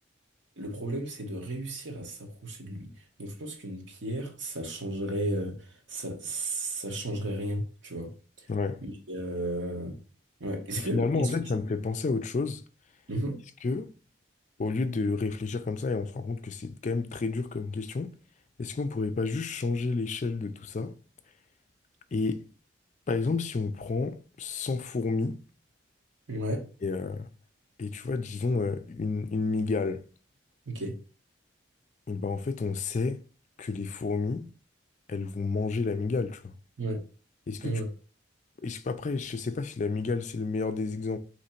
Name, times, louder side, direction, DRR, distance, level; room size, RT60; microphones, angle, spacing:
voice 1, 0.6-2.9 3.2-8.1 8.4-8.5 8.8-10.0 10.4-11.3 13.1-13.4 26.3-26.6 30.7-31.0 36.8-37.0 37.6-37.9, right 1 dB, 70° right, 1.1 m, -34 dB
voice 2, 8.5-8.8 10.8-12.6 13.6-13.9 14.6-18.1 18.6-20.9 22.1-22.4 23.1-25.4 26.8-27.3 27.8-30.1 32.1-33.2 33.6-34.5 35.1-36.5 37.5-37.7 38.6-41.2, left 4 dB, 40° left, 0.4 m, -30 dB
3.8 x 3.1 x 4.4 m
head